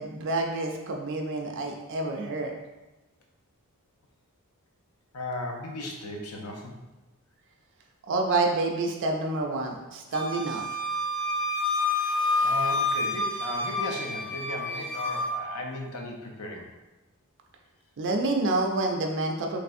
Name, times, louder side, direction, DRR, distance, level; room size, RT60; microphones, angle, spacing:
voice 1, 0.0-2.5 8.1-10.6 18.0-19.6, right 2 dB, 55° right, 2 dB, 0.4 m, -28 dB
voice 2, 5.1-6.7 11.7-12.1 12.4-16.7, left 1 dB, 70° left, 1 dB, 0.6 m, -36 dB
Wind instrument woodwind instrument, 10.1-15.3, left 2 dB, 40° left, 1.1 m, -28 dB
3.3 x 3.1 x 2.5 m, 1.1 s
head